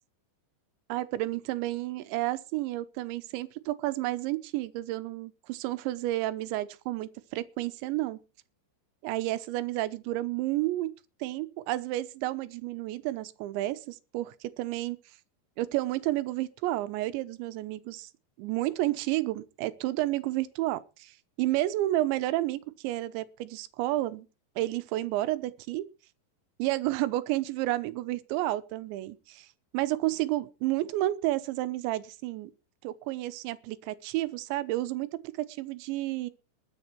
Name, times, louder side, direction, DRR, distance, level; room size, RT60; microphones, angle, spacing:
voice 1, 0.9-8.2 9.0-10.9 11.2-15.0 15.6-18.1 18.4-24.3 24.6-25.9 26.6-29.5 29.7-32.5 32.8-36.3, right 16 dB, 90° right, 3.2 m, -31 dB
21.0 x 7.6 x 4.6 m
omnidirectional pair, 5.1 m